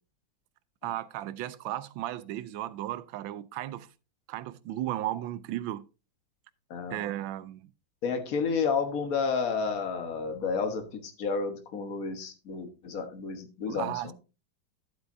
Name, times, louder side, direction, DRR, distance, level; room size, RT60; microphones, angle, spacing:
voice 1, 0.8-3.9 4.3-5.8 6.9-7.7 13.7-14.1, right 13 dB, 90° right, 1.4 m, -35 dB
voice 2, 8.0-14.1, left 5 dB, 50° left, 1.5 m, -31 dB
11.5 x 8.0 x 2.6 m
omnidirectional pair, 2.1 m